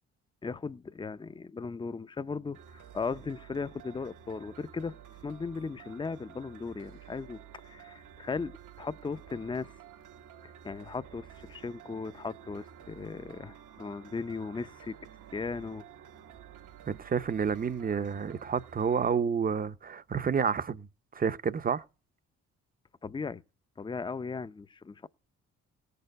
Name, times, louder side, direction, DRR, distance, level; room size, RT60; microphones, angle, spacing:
voice 1, 0.4-5.0 5.2-9.7 10.4-15.0 15.3-15.8 23.0-23.4 23.8-25.1, left 4 dB, 15° left, 0.6 m, -37 dB
sound 1, 2.5-19.1, right 9 dB, 80° right, 1.2 m, -51 dB
voice 2, 16.9-20.9 21.1-21.8, right 6 dB, 30° right, 0.7 m, -29 dB
17.5 x 6.7 x 5.3 m
cardioid pair, 90°, 30 cm